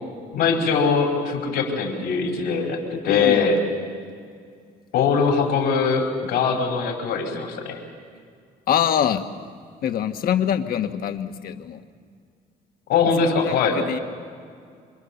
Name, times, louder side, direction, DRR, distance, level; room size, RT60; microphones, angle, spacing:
voice 1, 0.3-3.6 4.9-7.8 12.9-13.8, left 5 dB, 85° left, 0 dB, 4.8 m, -22 dB
voice 2, 3.1-3.5 8.7-9.2 9.8-11.8 13.2-14.0, left 9 dB, 60° left, 6 dB, 1.5 m, -24 dB
27.0 x 24.5 x 7.1 m, 2.2 s
cardioid pair, 110°, 17 cm